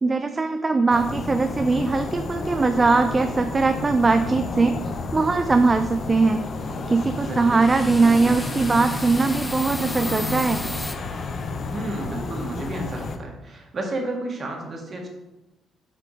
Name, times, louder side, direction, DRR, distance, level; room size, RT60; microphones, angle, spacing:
voice 1, 0.0-4.7 5.1-6.4 6.9-10.6, right 3 dB, 25° right, 8 dB, 0.3 m, -20 dB
sound 1, 0.9-13.2, left 3 dB, 50° left, 0.7 m, -31 dB
voice 2, 7.2-7.6 11.7-15.1, right 2 dB, 45° right, 1 dB, 1.6 m, -31 dB
sound 2, 7.6-11.0, left 1 dB, 5° left, 0.7 m, -35 dB
6.7 x 3.7 x 4.9 m, 1.0 s
cardioid pair, 90°, 0 cm